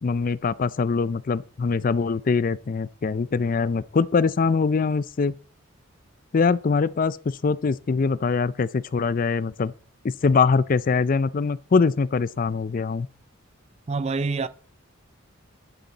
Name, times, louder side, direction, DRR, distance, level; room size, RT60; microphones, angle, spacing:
voice 1, 0.0-5.3 6.3-9.7 10.0-13.1, left 4 dB, 40° left, 0.4 m, -23 dB
voice 2, 13.9-14.5, right 4 dB, 30° right, 0.4 m, -26 dB
11.5 x 8.0 x 4.0 m
head